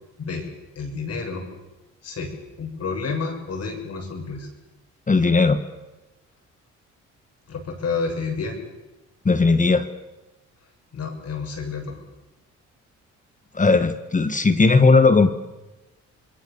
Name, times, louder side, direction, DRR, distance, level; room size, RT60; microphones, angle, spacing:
voice 1, 0.8-1.4 2.0-2.3 2.6-4.5 7.5-8.6 10.9-12.0, left 4 dB, 55° left, 3 dB, 7.2 m, -29 dB
voice 2, 5.1-5.6 9.2-9.9 13.5-15.3, left 3 dB, 25° left, 10 dB, 1.5 m, -17 dB
26.5 x 21.0 x 7.2 m, 1.0 s
cardioid pair, 90°, 30 cm